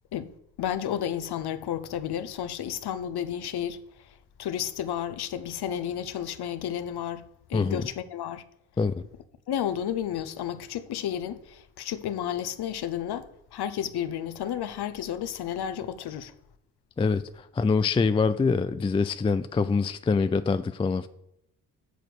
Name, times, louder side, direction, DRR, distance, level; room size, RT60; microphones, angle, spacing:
voice 1, 0.6-8.4 9.5-16.3, left 10 dB, 55° left, 0.9 m, -32 dB
voice 2, 17.0-21.1, left 4 dB, 15° left, 0.4 m, -25 dB
8.1 x 4.5 x 6.7 m
hypercardioid pair, 45°, 48 cm